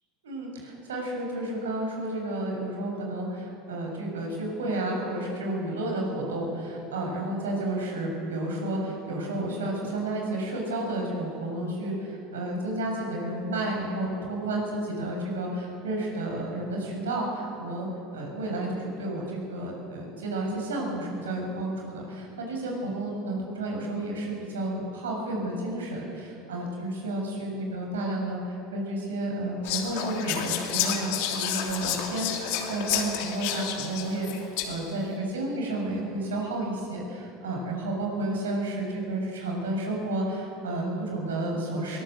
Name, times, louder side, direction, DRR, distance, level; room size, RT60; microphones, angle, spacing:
voice 1, 0.2-42.0, right 1 dB, 75° right, 0 dB, 7.1 m, -31 dB
Whispering, 29.6-35.0, left 9 dB, 65° left, 2.9 m, -30 dB
22.0 x 21.0 x 8.0 m, 2.6 s
hypercardioid pair, 75°, 0 cm